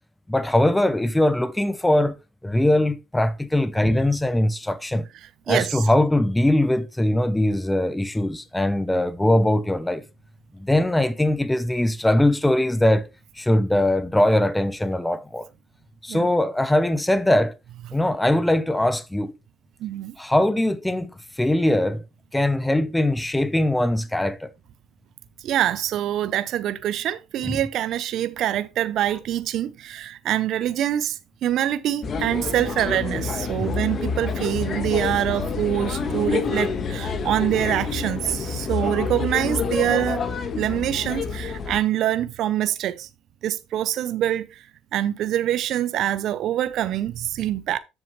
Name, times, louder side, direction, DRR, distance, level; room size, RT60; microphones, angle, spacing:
voice 1, 0.3-2.2 2.4-5.0 5.5-10.0 10.5-13.1 13.4-15.5 16.0-17.6 17.9-19.3 20.2-21.1 21.4-22.0 22.3-24.5 27.4-27.6 33.6-33.8, left 1 dB, 10° left, 0.7 m, -21 dB
voice 2, 5.5-5.8 16.1-16.3 19.8-20.1 25.4-40.2 40.6-43.1 43.4-44.6 44.9-47.8, right 12 dB, 60° right, 0.6 m, -25 dB
sound 1, 32.0-41.8, left 5 dB, 40° left, 1.3 m, -28 dB
8.0 x 7.1 x 3.1 m
supercardioid pair, 100°, 0 cm